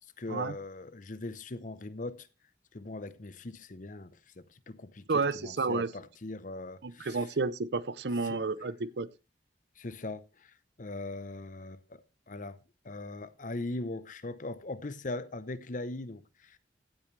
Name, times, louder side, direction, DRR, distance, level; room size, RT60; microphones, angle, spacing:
voice 1, 0.2-2.3 2.7-7.3 8.2-8.4 9.8-16.6, left 2 dB, 50° left, 0.8 m, -40 dB
voice 2, 5.1-5.9 6.8-9.1, right 4 dB, 70° right, 0.6 m, -31 dB
15.5 x 8.6 x 3.2 m
head